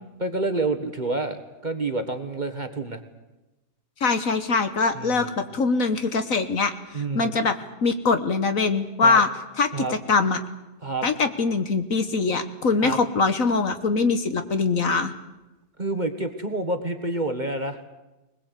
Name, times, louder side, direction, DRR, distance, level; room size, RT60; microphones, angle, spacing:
voice 1, 0.2-3.0 4.9-5.3 6.9-7.3 9.0-9.2 9.7-10.0 10.8-11.1 12.8-13.0 15.8-17.8, right 2 dB, 30° right, 8 dB, 1.4 m, -28 dB
voice 2, 4.0-6.7 7.1-7.5 7.8-9.3 9.6-10.4 11.0-15.1, left 4 dB, 55° left, 10 dB, 1.5 m, -22 dB
21.0 x 20.5 x 8.3 m, 1.0 s
omnidirectional pair, 1.8 m